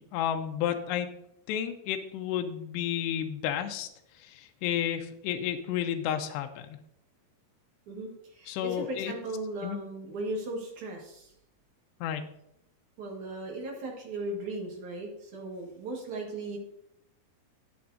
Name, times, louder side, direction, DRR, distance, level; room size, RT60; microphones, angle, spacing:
voice 1, 0.1-1.1 1.5-3.9 4.2-6.8 8.5-9.1 9.6-9.8 12.0-12.3, left 10 dB, 85° left, 6 dB, 2.8 m, -31 dB
voice 2, 7.9-11.3 13.0-16.6, right 2 dB, 55° right, -1 dB, 2.7 m, -37 dB
13.0 x 8.6 x 2.7 m, 0.78 s
omnidirectional pair, 4.8 m